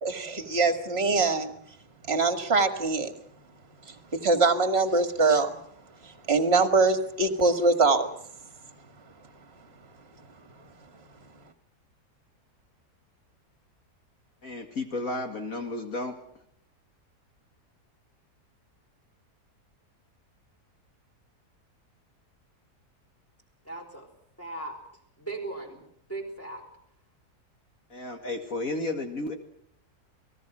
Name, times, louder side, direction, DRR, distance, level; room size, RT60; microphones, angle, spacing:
voice 1, 0.0-1.5 2.1-3.1 3.9-4.0 4.2-5.5 6.0-8.1, right 3 dB, 40° right, 8 dB, 2.2 m, -23 dB
voice 2, 14.4-16.2 27.9-29.3, left 2 dB, 60° left, 4 dB, 2.5 m, -32 dB
voice 3, 23.6-24.1 24.4-24.8 25.2-26.6, right 2 dB, 10° left, 0 dB, 4.6 m, -38 dB
30.0 x 19.0 x 6.1 m, 0.68 s
omnidirectional pair, 1.7 m